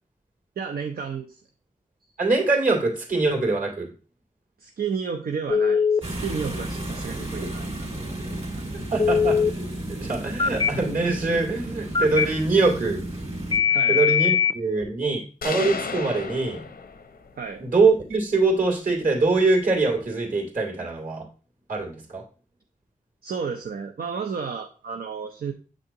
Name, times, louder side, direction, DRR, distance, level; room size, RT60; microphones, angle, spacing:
voice 1, 0.6-1.4 4.6-7.9 8.4-8.7 13.7-14.0 17.4-17.6 23.2-25.5, right 6 dB, 80° right, 4 dB, 0.6 m, -32 dB
voice 2, 2.2-3.9 8.9-9.4 9.9-13.0 13.6-16.6 17.6-21.3 21.7-22.2, right 3 dB, 65° right, 2 dB, 2.5 m, -23 dB
Telephone, 5.5-6.0 9.0-9.5 10.4-10.7 11.9-12.3 13.5-14.5, left 7 dB, 30° left, 0.4 m, -20 dB
sound 1, 6.0-13.6, right 1 dB, 45° right, 2.2 m, -33 dB
sound 2, 15.4-17.4, left 4 dB, 90° left, 0.7 m, -33 dB
7.7 x 6.2 x 2.9 m, 0.36 s
wide cardioid pair, 70°, 15 cm